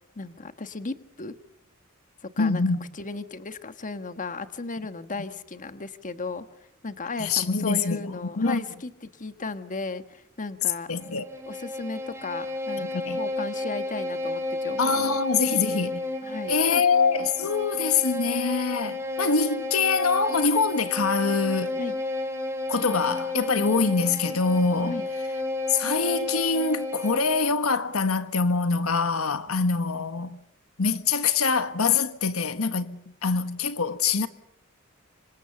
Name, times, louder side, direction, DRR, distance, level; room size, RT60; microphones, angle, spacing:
voice 1, 0.1-1.3 2.2-2.6 2.9-6.5 6.8-10.9 11.5-15.2 16.2-16.8 21.8-22.0 24.8-25.1 29.5-29.6, left 3 dB, 40° left, 1.3 m, -35 dB
voice 2, 2.4-2.8 7.2-8.6 10.9-11.2 12.9-13.2 14.8-16.0 16.5-21.8 22.7-25.0 25.7-30.4 30.8-34.3, left 4 dB, 90° left, 1.5 m, -24 dB
Bowed string instrument, 10.9-27.6, left 2 dB, 15° right, 3.4 m, -32 dB
27.0 x 25.5 x 6.9 m
head